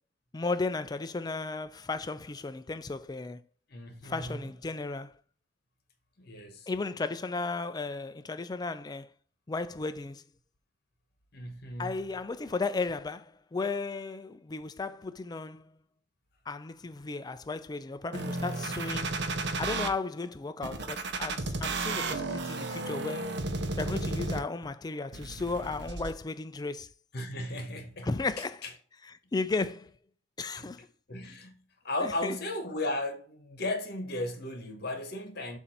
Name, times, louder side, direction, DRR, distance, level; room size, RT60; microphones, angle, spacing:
voice 1, 0.3-3.4 4.0-5.1 6.7-9.1 9.5-10.2 11.8-15.7 16.5-19.2 19.6-23.4 23.8-26.9 28.0-28.6 29.3-30.0 30.4-30.9 32.0-32.4, left 3 dB, 20° left, 0.4 m, -34 dB
voice 2, 3.7-4.4 6.2-6.7 11.3-12.0 27.1-28.1 28.6-28.7 30.6-30.7 31.1-35.6, left 1 dB, 60° left, 1.2 m, -35 dB
sound 1, 18.1-19.9 20.6-24.6 25.1-26.1, right 3 dB, 65° right, 0.7 m, -33 dB
7.1 x 2.7 x 5.7 m
head